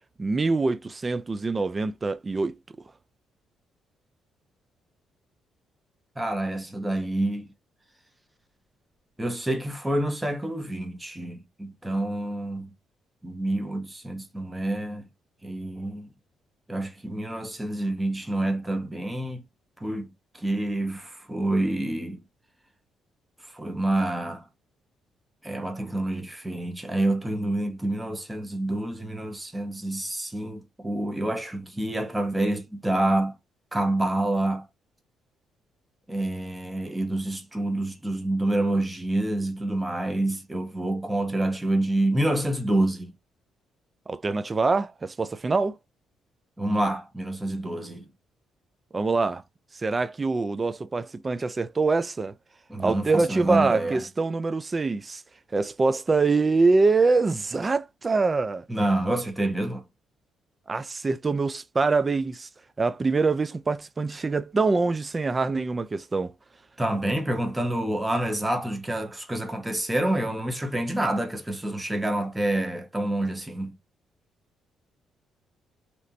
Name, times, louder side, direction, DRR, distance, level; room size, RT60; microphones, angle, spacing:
voice 1, 0.2-2.6 44.1-45.8 48.9-49.4 49.7-52.3 52.8-55.2 55.5-58.7 60.7-62.5 62.8-66.3, right 3 dB, 30° right, 0.4 m, -24 dB
voice 2, 6.2-7.5 9.2-12.7 13.2-15.0 15.4-16.1 16.7-19.4 19.8-20.1 20.4-22.2 23.5-24.4 25.4-33.3 33.7-34.6 36.1-43.1 46.6-48.1 52.7-54.0 58.7-59.8 66.8-73.7, right 1 dB, 10° right, 1.1 m, -27 dB
3.1 x 2.9 x 2.6 m
cardioid pair, 90°, 0 cm